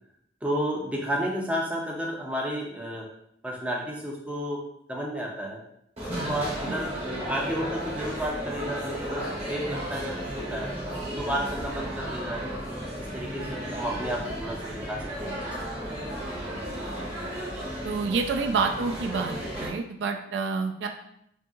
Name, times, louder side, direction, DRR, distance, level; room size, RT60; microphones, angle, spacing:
voice 1, 0.4-3.1 3.4-4.6 4.9-5.6 6.2-10.7 11.1-12.4 13.0-15.5, equal, 10° right, -1 dB, 0.3 m, -32 dB
sound 1, 6.0-19.7, equal, 35° right, 0.9 m, -34 dB
voice 2, 17.8-19.3 19.6-20.9, right 4 dB, 85° right, 4 dB, 0.3 m, -28 dB
2.7 x 2.6 x 2.3 m, 0.74 s
head